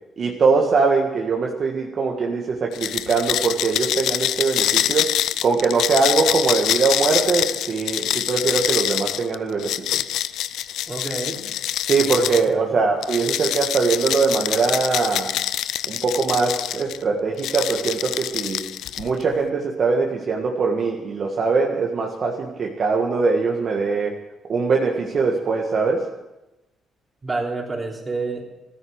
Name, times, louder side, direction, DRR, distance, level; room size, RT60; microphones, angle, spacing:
voice 1, 0.2-5.1 5.4-10.0 11.9-15.3 15.8-18.6 19.0-24.2 24.5-26.0, right 4 dB, 50° right, 0 dB, 1.8 m, -22 dB
sound 1, 2.7-12.5 13.0-17.0 17.4-19.2, left 12 dB, 85° left, 0.4 m, -25 dB
voice 2, 10.9-11.5 12.0-12.8 27.2-28.5, right 3 dB, 25° right, 0 dB, 3.5 m, -29 dB
14.0 x 9.8 x 8.0 m, 1.0 s
cardioid pair, 90°, 0 cm